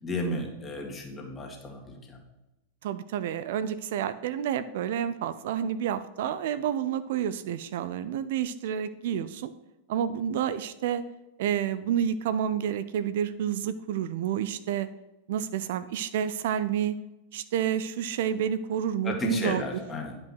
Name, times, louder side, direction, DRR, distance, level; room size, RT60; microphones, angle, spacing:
voice 1, 0.0-2.2 19.0-20.2, left 2 dB, 20° left, 1 dB, 2.3 m, -33 dB
voice 2, 2.8-9.5 9.9-11.0 11.4-14.9 15.3-17.0 17.3-19.6, right 9 dB, 55° right, 13 dB, 0.5 m, -29 dB
10.5 x 5.5 x 6.0 m, 0.96 s
figure-of-eight pair, 90°, 0 cm